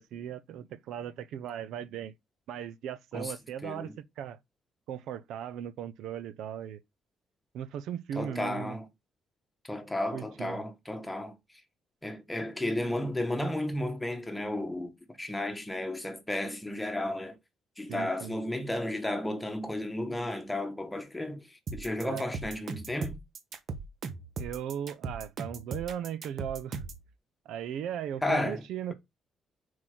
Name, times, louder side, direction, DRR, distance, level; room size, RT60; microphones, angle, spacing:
voice 1, 0.0-2.1 2.5-4.4 4.9-6.8 7.5-8.8 10.1-10.6 17.9-18.3 22.0-22.2 24.4-26.8 27.5-28.9, right 9 dB, 85° right, 0.5 m, -37 dB
voice 2, 3.6-3.9 8.1-8.9 9.6-11.4 12.0-17.4 17.8-23.2 28.2-28.6, left 1 dB, 10° left, 1.5 m, -33 dB
sound 1, 21.7-27.0, right 4 dB, 60° right, 1.1 m, -38 dB
5.8 x 4.7 x 3.8 m
cardioid pair, 90°, 0 cm